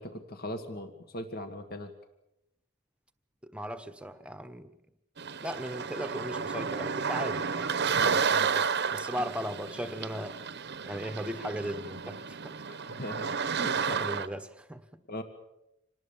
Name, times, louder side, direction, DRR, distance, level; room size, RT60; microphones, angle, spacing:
voice 1, 0.0-1.9 12.7-14.0 15.1-15.2, left 1 dB, 50° left, 1.9 m, -39 dB
voice 2, 3.4-4.7 5.4-10.4 10.8-12.6 13.7-15.0, equal, 5° right, 1.2 m, -38 dB
sound 1, 5.2-14.3, right 6 dB, 55° right, 1.0 m, -31 dB
26.5 x 19.0 x 7.4 m
head